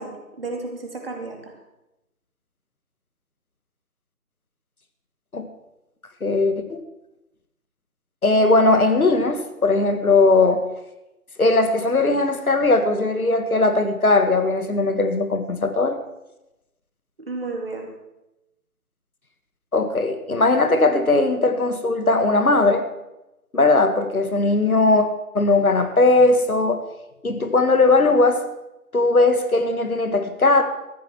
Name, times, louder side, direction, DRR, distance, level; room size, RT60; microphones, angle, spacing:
voice 1, 0.0-1.5 17.3-17.9, right 3 dB, 40° right, 2 dB, 2.4 m, -32 dB
voice 2, 6.2-6.8 8.2-10.6 11.4-16.0 19.7-22.8 23.5-25.1 25.3-26.8 27.2-28.4 28.9-30.6, left 3 dB, 65° left, 7 dB, 1.8 m, -18 dB
14.0 x 13.0 x 4.5 m, 0.94 s
figure-of-eight pair, 165°, 46 cm